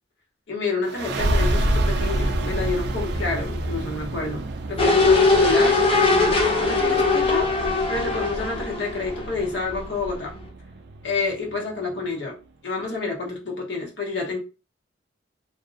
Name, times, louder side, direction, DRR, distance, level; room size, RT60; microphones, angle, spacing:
voice 1, 0.5-7.5 7.9-10.3 11.0-12.4 12.6-14.4, left 3 dB, 80° left, -1 dB, 0.9 m, -29 dB
sound 1, 0.8-12.1, right 1 dB, 65° right, 0.4 m, -28 dB
sound 2, 4.8-9.7 10.1-10.2, left 3 dB, 30° left, 0.5 m, -20 dB
2.5 x 2.0 x 2.5 m, 0.31 s
head